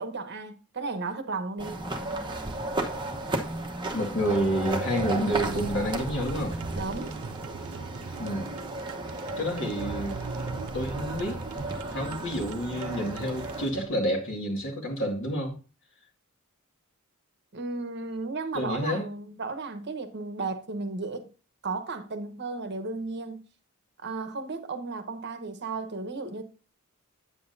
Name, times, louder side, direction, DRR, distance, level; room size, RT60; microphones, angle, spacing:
voice 1, 0.0-1.8 6.7-7.2 17.5-21.3 21.6-23.5 24.0-26.4, right 3 dB, 55° right, 1.0 m, -34 dB
sound 1, 1.6-13.7, right 2 dB, 20° right, 1.0 m, -34 dB
voice 2, 3.9-6.6 8.2-8.6 9.4-10.2 10.7-15.6 18.5-19.1, equal, 65° left, 2.0 m, -29 dB
sound 2, 4.2-13.9, right 4 dB, 85° right, 0.5 m, -40 dB
8.7 x 7.6 x 2.6 m
head